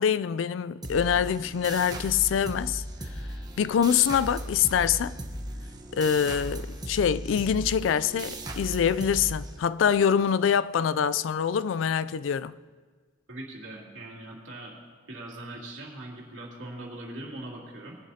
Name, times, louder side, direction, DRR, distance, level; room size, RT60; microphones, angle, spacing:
voice 1, 0.0-2.8 3.6-5.1 5.9-12.5, left 8 dB, 75° left, 0.3 m, -25 dB
sound 1, 0.8-10.0, right 1 dB, 20° right, 1.0 m, -37 dB
voice 2, 13.3-14.8 15.1-18.0, right 1 dB, 80° right, 2.7 m, -41 dB
20.5 x 11.0 x 2.8 m
head